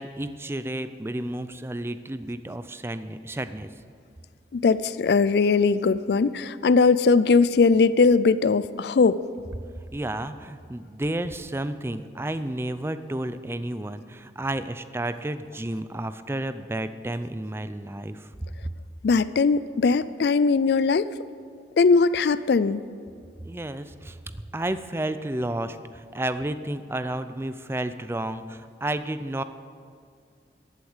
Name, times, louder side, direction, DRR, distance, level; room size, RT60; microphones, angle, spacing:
voice 1, 0.0-3.7 9.9-18.3 23.4-29.4, right 1 dB, 15° right, 12 dB, 0.5 m, -31 dB
voice 2, 4.5-9.2 19.0-21.1 21.8-22.8, left 4 dB, 65° left, 16 dB, 0.4 m, -20 dB
14.0 x 8.2 x 7.3 m, 2.3 s
head